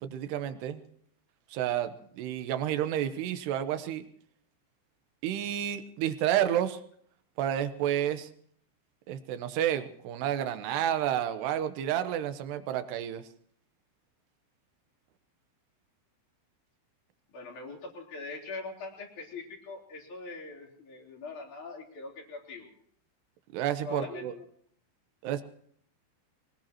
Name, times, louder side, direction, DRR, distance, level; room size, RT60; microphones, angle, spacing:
voice 1, 0.0-0.8 1.5-4.1 5.2-6.8 7.4-8.3 9.1-13.2 23.5-24.3 25.2-25.4, right 11 dB, 70° right, 10 dB, 3.0 m, -30 dB
voice 2, 17.3-22.7 23.8-24.4, left 3 dB, 45° left, 0 dB, 4.8 m, -42 dB
24.0 x 19.5 x 3.0 m, 0.62 s
omnidirectional pair, 5.3 m